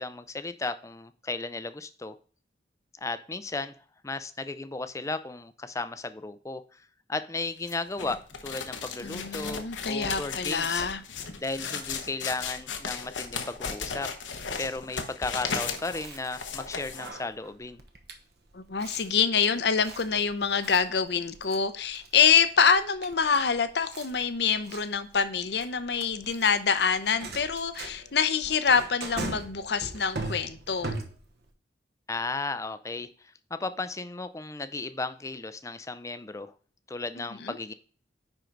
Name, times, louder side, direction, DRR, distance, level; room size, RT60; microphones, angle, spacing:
voice 1, 0.0-2.1 3.0-3.7 4.0-6.8 7.1-10.9 11.4-14.1 14.6-17.8 32.1-36.5 36.9-37.7, left 3 dB, 15° left, 12 dB, 0.5 m, -35 dB
sound 1, 7.6-17.1, left 5 dB, 85° left, 1.1 m, -36 dB
voice 2, 9.0-11.0 18.5-30.9 37.2-37.6, left 6 dB, 60° left, 12 dB, 0.7 m, -26 dB
Chewing mastication, 15.6-31.5, right 2 dB, 60° right, 1.1 m, -41 dB
9.9 x 3.9 x 4.6 m, 0.42 s
head